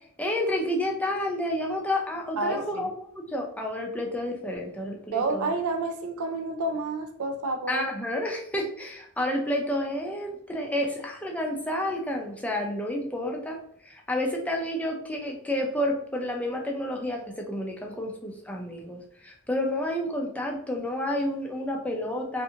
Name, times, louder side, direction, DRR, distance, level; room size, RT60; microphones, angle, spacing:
voice 1, 0.2-5.5 7.7-13.6 13.8-22.4, left 1 dB, 5° left, 1 dB, 0.4 m, -30 dB
voice 2, 2.4-2.9 5.1-7.9, right 3 dB, 85° right, 6 dB, 0.4 m, -29 dB
2.7 x 2.5 x 2.4 m, 0.67 s
head